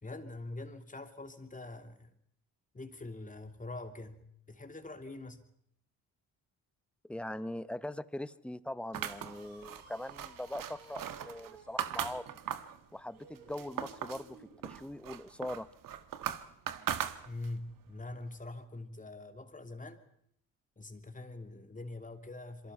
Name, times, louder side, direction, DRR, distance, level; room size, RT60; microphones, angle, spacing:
voice 1, 0.0-2.1 2.7-5.5 17.2-20.0 20.8-22.7, left 2 dB, 20° left, 7 dB, 3.0 m, -44 dB
voice 2, 7.1-12.3 12.9-15.7, left 1 dB, 5° left, 15 dB, 1.1 m, -41 dB
sound 1, 8.9-12.8 13.2-14.3 14.6-17.6, right 10 dB, 60° right, 1.6 m, -39 dB
sound 2, 9.1-14.6, right 4 dB, 85° right, 5.5 m, -57 dB
27.0 x 23.5 x 5.6 m, 0.71 s
supercardioid pair, 75°, 37 cm